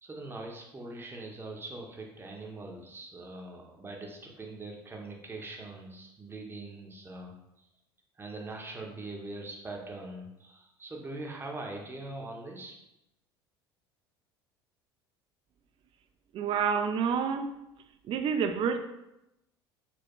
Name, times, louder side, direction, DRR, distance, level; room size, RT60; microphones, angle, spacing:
voice 1, 0.0-7.3 7.6-7.7 8.2-12.7, right 2 dB, 15° right, 0 dB, 0.8 m, -42 dB
voice 2, 16.3-17.5 18.1-18.8, right 6 dB, 40° right, 7 dB, 0.4 m, -28 dB
4.2 x 2.2 x 2.9 m, 0.88 s
hypercardioid pair, 65°, 13 cm